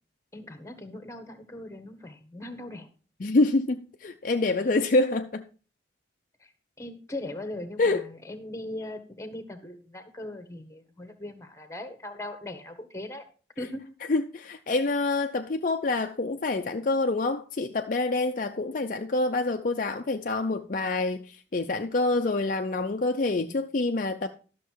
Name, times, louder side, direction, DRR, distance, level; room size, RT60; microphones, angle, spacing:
voice 1, 0.3-2.9 6.4-6.5 6.8-13.2 13.6-13.8, left 1 dB, 15° left, 1.2 m, -39 dB
voice 2, 3.2-5.4 7.8-8.0 14.1-24.3, left 2 dB, 45° left, 0.5 m, -26 dB
12.0 x 6.5 x 4.6 m
head